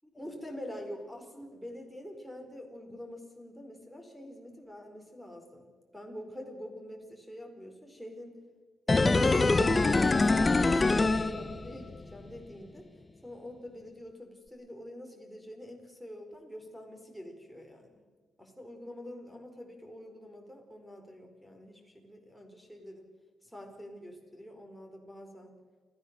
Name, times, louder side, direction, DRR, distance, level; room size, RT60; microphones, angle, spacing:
voice 1, 0.1-5.7 5.9-8.4 8.9-12.9 13.2-17.9 18.4-23.0 23.4-25.6, left 1 dB, ahead, 4 dB, 4.7 m, -46 dB
sound 1, 8.9-12.0 12.3-12.4, left 3 dB, 25° left, 1.0 m, -24 dB
29.0 x 15.0 x 6.9 m, 1.4 s
cardioid pair, 100°, 0 cm